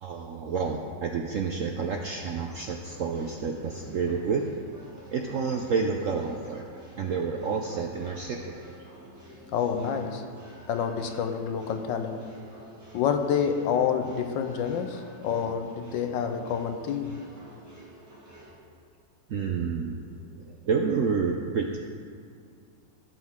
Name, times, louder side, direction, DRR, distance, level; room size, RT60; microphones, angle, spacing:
voice 1, 0.0-4.7 5.1-6.7 7.0-8.6 14.7-14.8 16.3-16.4 17.5-17.6 19.3-21.8, right 5 dB, 70° right, 0.7 m, -29 dB
sound 1, 2.4-18.6, equal, 10° right, 2.1 m, -50 dB
voice 2, 9.5-10.3 10.7-12.4 12.9-17.2, left 7 dB, 80° left, 1.4 m, -28 dB
16.0 x 6.2 x 3.6 m
omnidirectional pair, 2.0 m